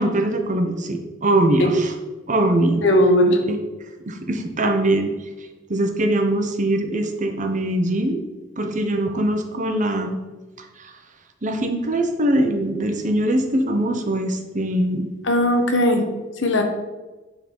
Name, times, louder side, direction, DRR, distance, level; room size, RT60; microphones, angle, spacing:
voice 1, 0.0-1.9 2.3-2.8 3.5-3.6 4.1-5.1 5.7-8.2 8.6-10.2 10.8-10.9 11.4-15.0, right 1 dB, 40° right, 5 dB, 0.9 m, -22 dB
voice 2, 2.8-3.4 15.2-16.0 16.4-16.6, left 1 dB, 70° left, 5 dB, 1.2 m, -17 dB
9.6 x 4.0 x 5.4 m, 1.2 s
head